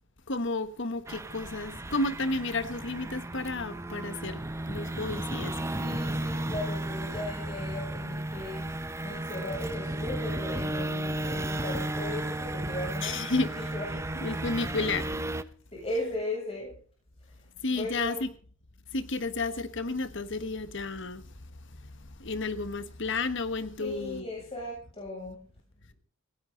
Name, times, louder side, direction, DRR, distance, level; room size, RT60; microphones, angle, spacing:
voice 1, 0.3-5.5 13.0-13.5 14.1-15.1 17.6-18.3 18.9-21.3 21.8-24.3, left 3 dB, 60° left, 1.4 m, -32 dB
sound 1, 1.1-15.4, right 1 dB, 15° right, 0.7 m, -34 dB
voice 2, 5.8-8.7 9.0-14.0 15.7-16.8 17.7-18.2 23.8-25.4, left 1 dB, 30° left, 7.2 m, -37 dB
18.0 x 17.0 x 4.0 m
head